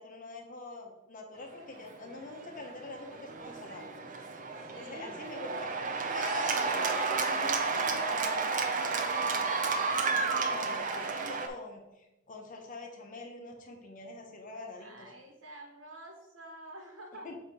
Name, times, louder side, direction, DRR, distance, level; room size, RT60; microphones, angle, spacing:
voice 1, 0.0-3.9 4.8-5.7 6.1-15.1 17.2-17.4, left 3 dB, 45° left, 2 dB, 1.0 m, -45 dB
Cheering / Applause, 1.8-11.5, right 4 dB, 45° right, 0.6 m, -32 dB
voice 2, 4.6-5.2 14.8-17.4, right 1 dB, 75° right, 2 dB, 1.5 m, -48 dB
7.7 x 2.9 x 4.7 m, 0.93 s
head